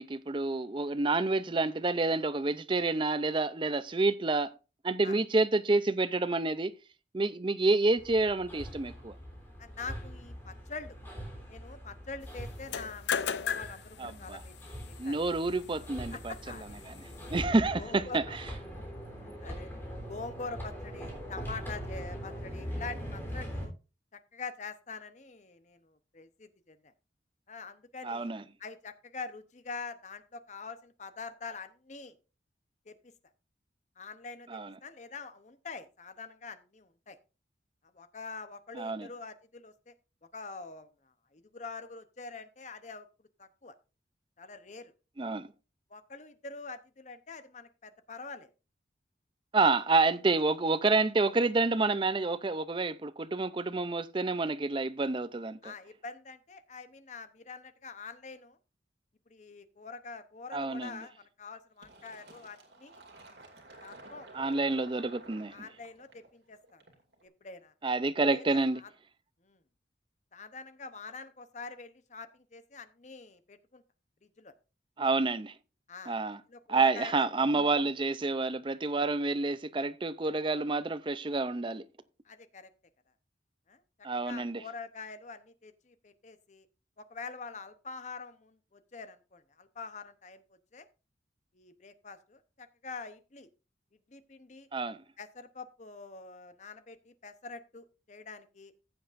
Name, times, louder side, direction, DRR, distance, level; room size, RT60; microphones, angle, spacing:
voice 1, 0.0-4.5 4.8-6.7 7.1-9.1 14.0-14.4 15.0-16.3 16.9-17.0 17.3-18.4 28.0-28.4 34.5-34.7 38.7-39.1 45.2-45.5 49.5-55.7 60.5-61.0 64.3-65.5 67.8-68.8 75.0-75.5 76.1-76.4 76.7-81.8 84.0-84.6 94.7-95.0, right 3 dB, 25° right, 0.5 m, -28 dB
Hammer, 8.0-23.6, equal, 10° left, 3.4 m, -42 dB
voice 2, 9.6-11.0 11.5-15.2 16.1-16.8 17.8-18.4 19.2-19.7 20.1-23.7 24.1-26.9 27.5-28.3 28.6-32.2 32.9-33.1 34.0-37.2 37.9-39.9 40.3-43.1 43.4-43.7 44.4-44.9 45.9-48.5 50.1-50.4 55.6-58.6 59.3-63.0 63.8-64.3 65.5-66.8 67.2-67.7 68.3-68.9 69.4-69.6 70.3-73.8 74.2-74.5 75.9-76.2 76.5-77.3 82.2-82.7 83.7-86.7 87.0-90.4 90.7-90.9 91.5-93.5 94.1-94.7 95.2-98.7, left 4 dB, 40° left, 0.8 m, -45 dB
sound 1, 12.6-17.4, left 7 dB, 70° left, 0.5 m, -38 dB
Fill (with liquid), 61.8-67.2, right 2 dB, 70° right, 2.3 m, -53 dB
14.5 x 7.9 x 2.5 m
head